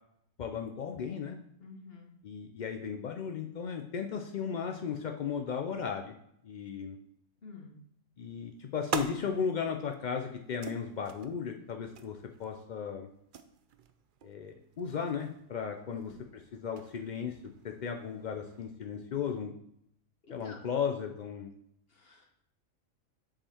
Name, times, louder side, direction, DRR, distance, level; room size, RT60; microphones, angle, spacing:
voice 1, 0.4-1.4 2.2-6.2 6.4-7.0 8.2-13.1 14.2-16.1 16.6-17.4 17.6-19.5 20.3-21.5, left 7 dB, 75° left, 4 dB, 0.4 m, -35 dB
voice 2, 1.6-2.1 7.4-7.8 15.9-16.2 20.2-20.6 21.9-22.3, left 3 dB, 45° left, 1 dB, 1.4 m, -50 dB
sound 1, 8.2-18.6, right 7 dB, 60° right, 0.5 m, -45 dB
7.4 x 5.0 x 4.3 m, 0.72 s
omnidirectional pair, 1.4 m